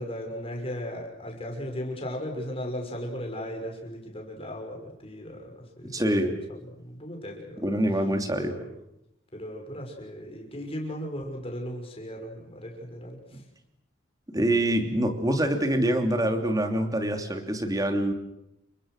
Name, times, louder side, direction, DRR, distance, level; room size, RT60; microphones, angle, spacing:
voice 1, 0.0-6.0 6.6-7.8 8.4-8.6 9.3-13.4, equal, 30° left, 2 dB, 6.3 m, -36 dB
voice 2, 5.9-6.3 7.6-8.6 13.3-13.4 14.3-18.1, right 1 dB, 20° right, 5 dB, 3.0 m, -25 dB
29.5 x 24.5 x 6.6 m, 0.85 s
head